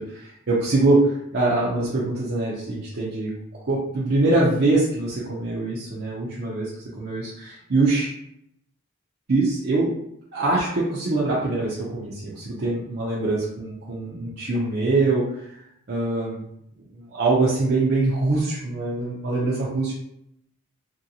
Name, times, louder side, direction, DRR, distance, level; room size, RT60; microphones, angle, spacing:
voice 1, 0.1-6.7 7.0-8.1 9.3-9.9 10.3-15.6 15.9-16.5 16.9-19.9, right 2 dB, 50° right, -6 dB, 0.5 m, -23 dB
2.7 x 2.6 x 2.7 m, 0.77 s
head